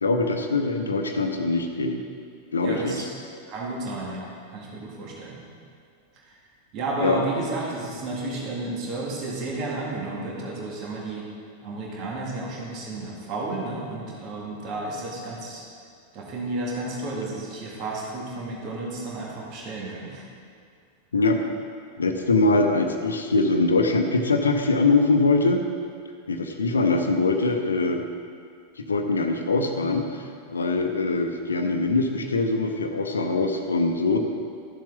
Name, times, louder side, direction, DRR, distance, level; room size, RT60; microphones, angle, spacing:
voice 1, 0.0-2.0 2.5-3.0 7.0-7.2 21.1-21.4 22.0-25.6 26.3-28.1 28.8-30.1 30.5-34.2, left 3 dB, 75° left, 5 dB, 0.8 m, -22 dB
voice 2, 2.6-3.1 3.5-5.4 6.2-6.3 6.7-11.3 11.6-15.6 16.1-20.3, right 2 dB, 40° right, -3 dB, 2.2 m, -32 dB
13.5 x 7.3 x 3.7 m, 2.2 s
figure-of-eight pair, 90°, 0 cm